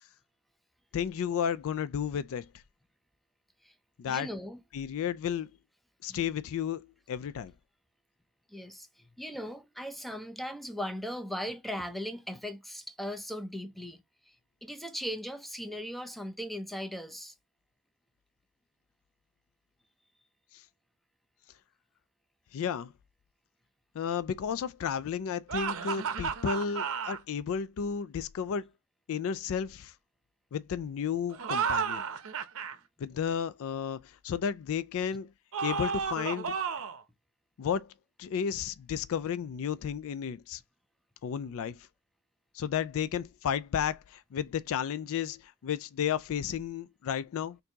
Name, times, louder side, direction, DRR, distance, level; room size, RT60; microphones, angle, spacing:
voice 1, 0.9-2.5 4.0-4.3 4.7-5.5 6.0-7.5 22.5-22.9 23.9-28.7 29.1-29.9 30.5-32.0 33.0-35.3 35.6-36.6 37.6-37.9 38.2-40.6 41.2-41.9 42.5-47.6, left 8 dB, 65° left, 0.3 m, -33 dB
voice 2, 4.1-4.6 6.1-6.2 8.5-14.4 14.6-17.3, equal, ahead, 0.6 m, -38 dB
sound 1, 25.5-27.2 31.3-32.7 35.5-37.0, right 6 dB, 65° right, 0.7 m, -32 dB
4.4 x 2.7 x 2.8 m
head